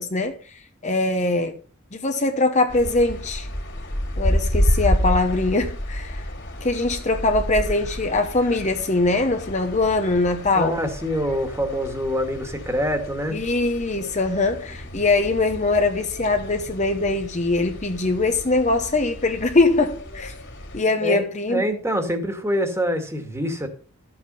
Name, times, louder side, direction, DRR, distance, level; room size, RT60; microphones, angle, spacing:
voice 1, 0.0-1.6 1.9-3.5 4.2-6.3 6.6-10.8 13.3-20.3 20.7-21.6, left 2 dB, 35° left, 1.0 m, -22 dB
sound 1, 2.7-20.8, equal, 55° left, 3.0 m, -30 dB
voice 2, 10.5-13.4 21.0-23.7, equal, 10° right, 1.9 m, -25 dB
13.0 x 7.9 x 5.5 m
head